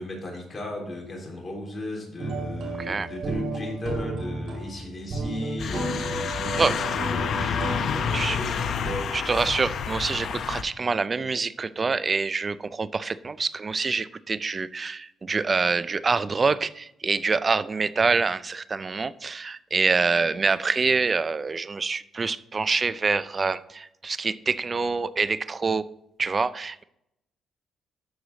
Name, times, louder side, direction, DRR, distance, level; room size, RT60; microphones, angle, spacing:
voice 1, 0.0-6.6 7.0-8.8, left 1 dB, 30° left, 3.5 m, -37 dB
sound 1, 2.2-9.0, right 2 dB, 65° right, 2.7 m, -33 dB
sound 2, 5.6-10.6, left 6 dB, 65° left, 0.7 m, -29 dB
voice 2, 9.1-25.8 26.2-26.8, right 4 dB, 35° right, 0.4 m, -26 dB
12.5 x 4.8 x 4.0 m
cardioid pair, 90°, 0 cm